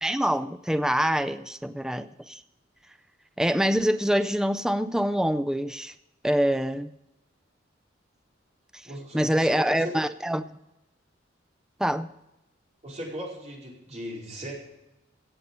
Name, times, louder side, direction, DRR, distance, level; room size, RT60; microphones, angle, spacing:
voice 1, 0.0-2.4 3.4-5.9 6.2-6.9 9.1-10.5 11.8-12.1, equal, 5° right, 11 dB, 0.4 m, -25 dB
voice 2, 8.8-9.9 12.8-14.5, equal, 40° right, -3 dB, 4.6 m, -37 dB
16.5 x 8.3 x 5.4 m, 0.89 s
head